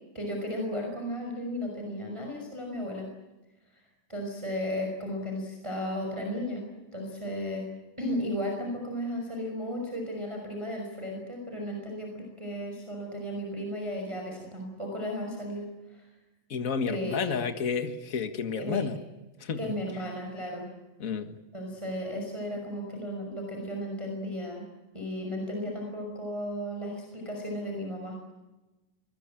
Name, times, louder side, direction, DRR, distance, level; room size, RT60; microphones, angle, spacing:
voice 1, 0.1-3.1 3.7-3.8 4.1-7.6 8.0-16.1 16.9-17.4 18.6-18.8 19.6-20.7 21.5-24.6 24.9-28.2, equal, 10° right, 1 dB, 5.4 m, -34 dB
voice 2, 16.5-19.0 19.4-19.8 21.0-21.4, left 6 dB, 45° left, 7 dB, 1.1 m, -31 dB
24.5 x 21.0 x 9.0 m, 1.1 s
omnidirectional pair, 3.9 m